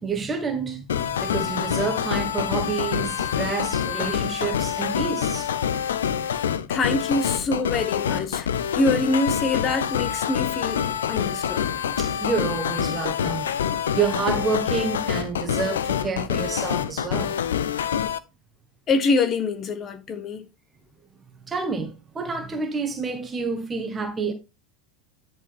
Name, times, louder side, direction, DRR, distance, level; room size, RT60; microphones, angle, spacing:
voice 1, 0.0-5.5 11.1-11.2 12.0-13.5 13.9-17.4 21.5-24.3, right 5 dB, 25° right, 1.4 m, -28 dB
sound 1, 0.9-18.2, left 8 dB, 75° left, 0.6 m, -26 dB
voice 2, 6.7-11.8 18.9-20.5, left 3 dB, 35° left, 1.3 m, -25 dB
10.5 x 4.7 x 3.5 m
figure-of-eight pair, 80°, 0 cm